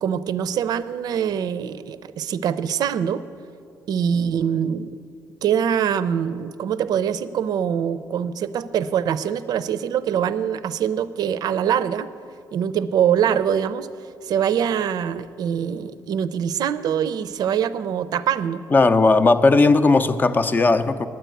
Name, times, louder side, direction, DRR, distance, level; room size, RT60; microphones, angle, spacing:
voice 1, 0.0-3.2 3.9-5.0 5.4-12.1 12.5-13.9 14.2-18.6, right 8 dB, 65° right, 14 dB, 0.5 m, -23 dB
voice 2, 18.7-21.1, left 3 dB, 25° left, 9 dB, 0.5 m, -16 dB
9.8 x 8.3 x 9.1 m, 2.4 s
cardioid pair, 115°, 7 cm